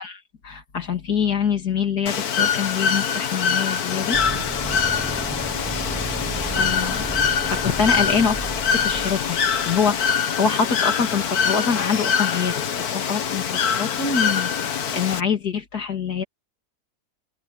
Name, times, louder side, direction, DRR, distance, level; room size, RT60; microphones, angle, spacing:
voice 1, 0.0-4.2 6.6-7.1 7.5-9.4 9.6-13.5 13.8-16.2, left 6 dB, 90° left, 3.0 m, -25 dB
Bird / Water, 2.1-15.2, left 7 dB, 75° left, 1.7 m, -24 dB
sound 1, 4.1-10.1, right 2 dB, 10° right, 0.8 m, -33 dB
open air
omnidirectional pair, 1.6 m